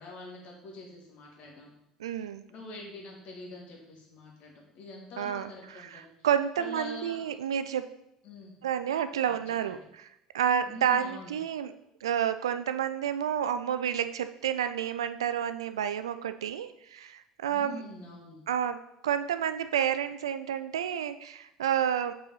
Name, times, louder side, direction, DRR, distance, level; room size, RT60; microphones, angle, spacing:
voice 1, 0.0-1.7 2.5-6.3 6.6-7.2 8.2-8.6 9.3-9.4 9.6-9.8 10.6-11.4 17.5-18.5, left 2 dB, 55° left, -1 dB, 1.9 m, -45 dB
voice 2, 2.0-2.4 5.2-7.9 8.6-10.1 10.3-11.7 12.0-17.8 18.5-18.8 19.0-22.1, right 9 dB, 80° right, 11 dB, 0.3 m, -30 dB
5.4 x 4.0 x 5.5 m, 0.81 s
figure-of-eight pair, 65°, 3 cm